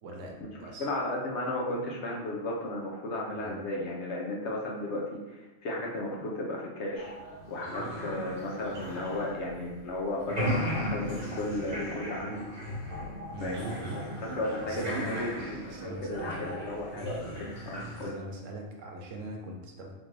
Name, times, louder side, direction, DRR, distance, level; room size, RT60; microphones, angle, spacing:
voice 1, 0.0-0.9 3.3-3.6 13.3-13.6 14.6-15.1 15.7-16.6 18.0-19.9, right 1 dB, 70° right, 0 dB, 1.0 m, -42 dB
voice 2, 0.8-7.1 7.5-12.5 13.4-17.2 17.7-18.1, left 1 dB, 65° left, -1 dB, 0.9 m, -34 dB
sound 1, 7.0-9.9 10.2-18.1, equal, 40° right, 1.3 m, -37 dB
3.6 x 2.6 x 3.1 m, 1.1 s
omnidirectional pair, 1.4 m